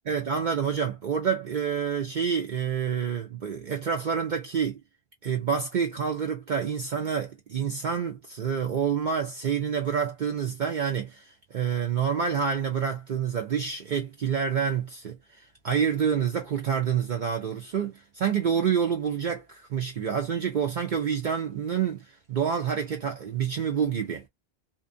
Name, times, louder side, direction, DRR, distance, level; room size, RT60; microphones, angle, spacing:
voice 1, 0.1-4.8 5.2-15.2 15.6-24.2, right 7 dB, 55° right, 0.6 m, -28 dB
2.6 x 2.1 x 2.5 m
omnidirectional pair, 1.1 m